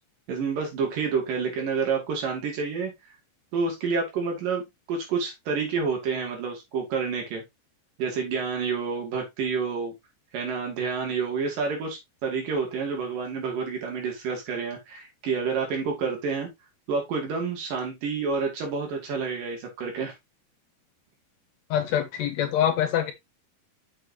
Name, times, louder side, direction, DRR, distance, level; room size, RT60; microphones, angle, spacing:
voice 1, 0.3-2.9 3.5-4.6 4.9-7.4 8.0-9.9 10.3-16.5 16.9-20.1, right 5 dB, 85° right, 4.3 m, -29 dB
voice 2, 21.7-23.1, left 10 dB, 70° left, 1.8 m, -24 dB
7.6 x 6.6 x 2.9 m
omnidirectional pair, 3.8 m